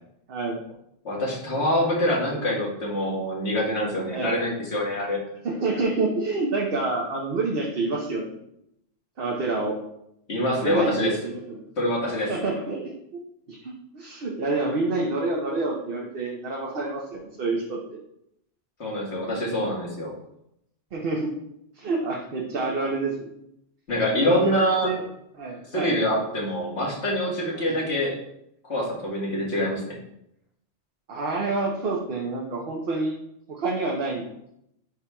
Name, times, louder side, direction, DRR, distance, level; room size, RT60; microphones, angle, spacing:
voice 1, 0.3-0.6 4.1-4.4 5.4-8.4 9.2-9.8 10.6-11.7 12.3-12.9 13.5-17.8 20.9-21.3 21.8-23.3 24.2-25.0 25.3-26.0 27.5-27.8 31.1-33.2 33.5-34.3, right 3 dB, 55° right, -2 dB, 1.0 m, -28 dB
voice 2, 1.0-5.2 10.3-11.1 11.8-12.3 18.8-20.1 23.9-24.9 25.7-28.1 28.7-30.0, left 1 dB, 65° left, -3 dB, 1.8 m, -25 dB
10.5 x 4.4 x 2.2 m, 0.79 s
omnidirectional pair, 1.2 m